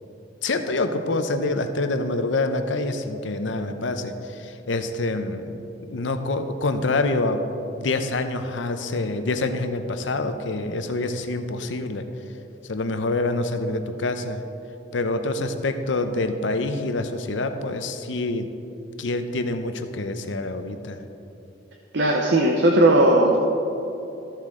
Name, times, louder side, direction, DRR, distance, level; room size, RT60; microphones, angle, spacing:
voice 1, 0.4-7.4 7.8-12.1 12.6-14.4 14.9-18.5 19.0-21.0, left 2 dB, 80° left, 8 dB, 0.7 m, -26 dB
voice 2, 21.9-23.4, right 1 dB, 65° right, 1 dB, 0.7 m, -17 dB
14.0 x 7.5 x 3.8 m, 2.9 s
head